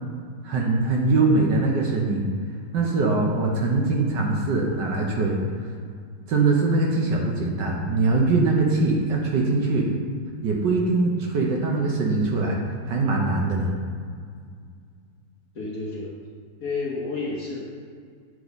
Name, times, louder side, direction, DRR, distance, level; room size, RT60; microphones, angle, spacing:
voice 1, 0.4-2.3 2.7-5.4 6.3-10.0 10.4-12.6 12.8-13.7, right 3 dB, 65° right, -1 dB, 1.3 m, -22 dB
voice 2, 15.5-16.1 16.6-17.6, left 3 dB, 55° left, -4 dB, 1.1 m, -30 dB
8.0 x 4.2 x 4.0 m, 2.1 s
omnidirectional pair, 2.3 m